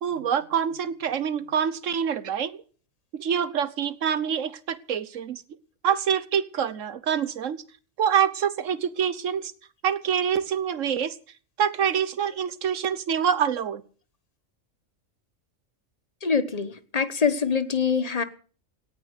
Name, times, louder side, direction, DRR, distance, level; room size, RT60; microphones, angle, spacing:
voice 1, 0.0-2.6 3.1-5.4 5.8-7.6 8.0-9.5 9.8-11.2 11.6-13.8, right 8 dB, 75° right, 16 dB, 1.3 m, -26 dB
voice 2, 16.2-18.2, left 6 dB, 30° left, 12 dB, 1.2 m, -24 dB
18.0 x 9.9 x 6.6 m, 0.42 s
omnidirectional pair, 1.4 m